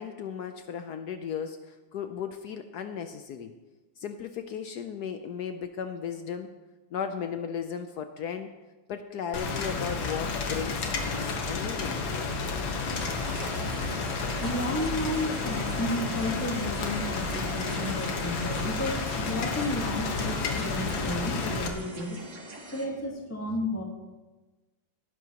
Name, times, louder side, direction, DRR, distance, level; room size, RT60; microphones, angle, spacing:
voice 1, 0.0-3.5 4.0-6.5 6.9-8.5 8.9-12.0, left 7 dB, 70° left, 8 dB, 1.0 m, -36 dB
Rain, 9.3-21.7, left 4 dB, 85° left, 2.1 m, -31 dB
sound 1, 12.9-22.9, right 2 dB, 45° right, 1.7 m, -44 dB
voice 2, 14.0-22.2 22.7-23.8, left 1 dB, 10° left, -1 dB, 1.4 m, -33 dB
18.0 x 11.0 x 2.9 m, 1.2 s
omnidirectional pair, 2.1 m